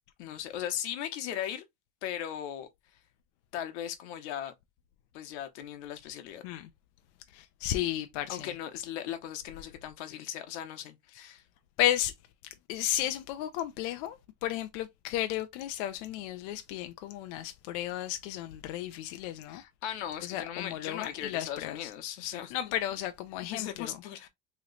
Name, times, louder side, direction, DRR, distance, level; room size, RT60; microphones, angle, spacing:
voice 1, 0.2-1.6 2.0-2.7 3.5-4.5 5.1-6.4 8.3-11.4 19.5-22.5 23.4-24.3, left 10 dB, 75° left, 1.0 m, -38 dB
voice 2, 7.3-8.5 11.8-12.1 12.7-19.6 20.2-21.9 22.5-24.0, left 13 dB, 55° left, 0.5 m, -33 dB
3.1 x 2.9 x 3.8 m
cardioid pair, 170°, 34 cm